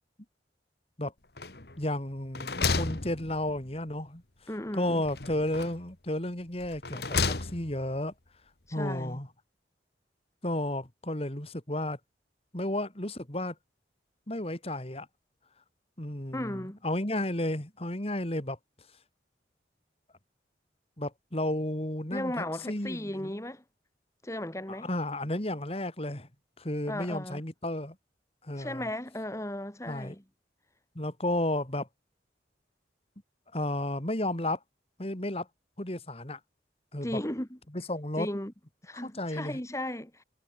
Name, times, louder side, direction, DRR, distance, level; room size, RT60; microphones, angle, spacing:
sound 1, 1.4-1.9 2.2-3.8 5.0-5.9 6.6-7.9, left 4 dB, 60° left, 2.1 m, -32 dB
voice 1, 1.8-4.2 4.7-8.1 8.7-9.3 10.4-12.0 12.5-13.5 14.3-15.1 16.0-18.6 21.0-22.3 22.7-23.3 24.8-26.3 26.6-27.9 28.4-28.9 29.9-30.2 30.9-31.9 33.5-34.6 35.0-35.5 35.8-36.4 36.9-37.2 37.7-38.3 38.9-39.6, left 1 dB, 35° left, 3.2 m, -32 dB
voice 2, 4.5-5.0 8.7-9.2 16.3-16.8 22.1-23.6 24.2-24.9 26.9-27.4 28.6-30.2 37.0-37.6 38.2-38.5 38.8-40.2, left 1 dB, 15° left, 2.5 m, -36 dB
head